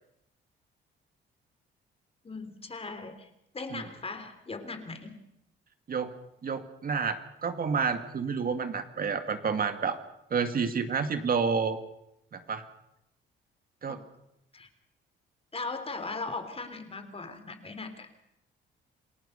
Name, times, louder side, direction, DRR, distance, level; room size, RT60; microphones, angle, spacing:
voice 1, 2.2-3.3 3.5-5.2 13.9-14.0 14.5-14.7 15.5-18.1, left 3 dB, 30° left, 8 dB, 3.4 m, -38 dB
voice 2, 6.4-10.0 10.3-11.8 12.3-12.6 13.8-14.0, right 5 dB, 45° right, 8 dB, 2.1 m, -29 dB
28.0 x 18.0 x 6.7 m, 0.80 s
cardioid pair, 90°, 20 cm